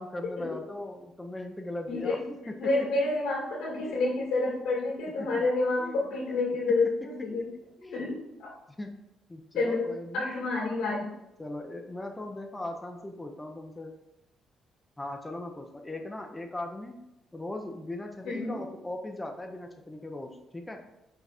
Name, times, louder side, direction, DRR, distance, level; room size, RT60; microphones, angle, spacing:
voice 1, 0.0-2.2 3.8-4.0 4.5-4.6 5.8-6.0 7.8-8.1 8.8-8.9 9.3-10.3 11.4-13.9 15.0-16.9 17.3-20.8, left 1 dB, 15° left, 3 dB, 0.7 m, -39 dB
voice 2, 1.9-2.2 2.6-7.5 7.9-8.5 9.5-11.2 18.2-18.6, left 3 dB, 90° left, -2 dB, 2.2 m, -29 dB
5.8 x 4.0 x 4.2 m, 0.90 s
cardioid pair, 90°, 0 cm